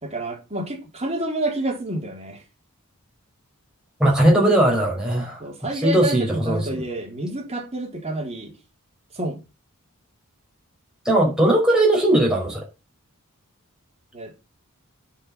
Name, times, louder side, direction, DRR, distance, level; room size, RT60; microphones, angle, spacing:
voice 1, 0.0-2.4 5.4-8.5 9.1-9.4 14.1-14.4, right 1 dB, 30° right, 3.9 m, -29 dB
voice 2, 4.0-5.4 5.8-6.7 11.0-12.7, right 1 dB, 5° right, 4.9 m, -18 dB
9.9 x 5.9 x 7.0 m
head